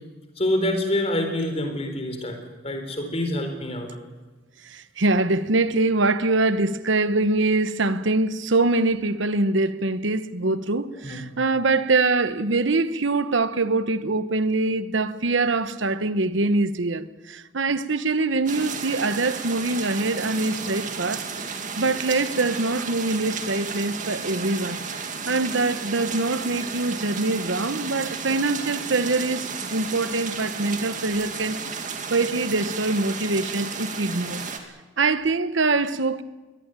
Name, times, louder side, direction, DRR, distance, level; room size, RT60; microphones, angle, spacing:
voice 1, 0.4-2.4 2.6-3.9 11.0-11.2, left 1 dB, 30° left, 4.0 m, -26 dB
voice 2, 4.6-21.3 21.8-24.8 25.3-31.6 32.1-34.4 35.0-36.2, right 3 dB, 70° right, 1.1 m, -24 dB
sound 1, 18.5-34.6, right 5 dB, 40° right, 2.2 m, -33 dB
23.0 x 18.0 x 9.0 m
head